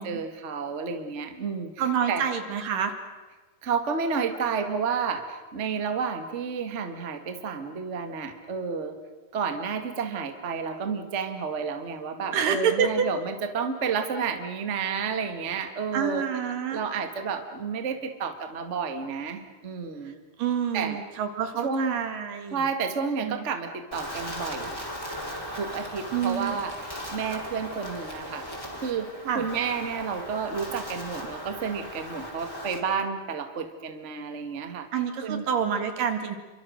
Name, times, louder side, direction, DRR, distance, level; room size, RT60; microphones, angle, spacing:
voice 1, 0.0-1.7 2.1-2.2 3.6-9.0 9.3-16.3 16.7-20.2 20.7-21.0 21.6-21.9 22.5-24.8 25.5-28.5 28.8-34.9 35.2-35.4, right 5 dB, 85° right, 6 dB, 0.6 m, -31 dB
voice 2, 1.8-2.9 12.3-13.1 15.9-16.8 20.0-20.1 20.4-22.6 23.2-23.4 26.1-26.6 29.2-29.5 34.9-36.4, right 7 dB, 60° right, 7 dB, 3.4 m, -27 dB
Wind, 23.9-32.8, equal, 5° left, 4.3 m, -38 dB
29.0 x 24.5 x 6.4 m, 1.3 s
omnidirectional pair, 4.6 m